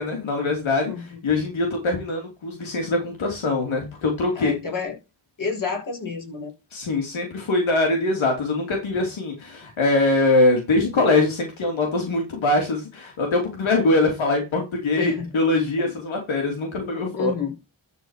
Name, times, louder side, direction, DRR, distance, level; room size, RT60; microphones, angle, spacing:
voice 1, 0.0-4.5 6.7-17.3, left 2 dB, 80° left, 3.1 m, -23 dB
voice 2, 0.8-1.2 4.3-5.0 5.4-6.5 15.0-15.3 15.8-15.9 17.2-17.5, left 5 dB, 45° left, 5.2 m, -29 dB
12.0 x 4.8 x 4.9 m
wide cardioid pair, 120°, 47 cm